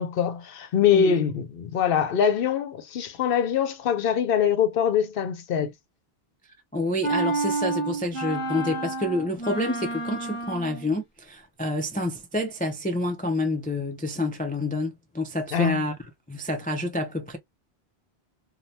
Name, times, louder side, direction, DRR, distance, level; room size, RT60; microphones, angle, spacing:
voice 1, 0.0-5.7 15.5-15.8, left 8 dB, 65° left, 0.8 m, -23 dB
voice 2, 6.7-15.9 16.3-17.4, left 1 dB, 10° left, 0.4 m, -28 dB
sound 1, 7.0-10.9, right 2 dB, 35° left, 0.8 m, -29 dB
3.2 x 2.3 x 2.6 m
omnidirectional pair, 1.1 m